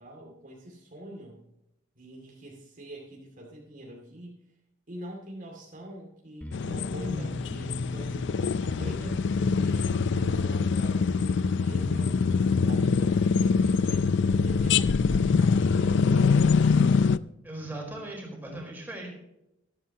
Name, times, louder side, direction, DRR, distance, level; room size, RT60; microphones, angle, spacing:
voice 1, 0.0-1.4 2.0-4.3 4.9-8.3 8.6-12.2 12.6-14.1 14.4-17.1, right 1 dB, 40° right, -1 dB, 2.5 m, -44 dB
Bass guitar, 6.4-16.0, equal, 5° left, 0.9 m, -38 dB
sound 1, 6.5-17.2, left 5 dB, 60° left, 0.4 m, -24 dB
voice 2, 17.4-19.1, right 1 dB, 10° right, -2 dB, 4.3 m, -38 dB
13.5 x 13.5 x 2.9 m, 0.87 s
head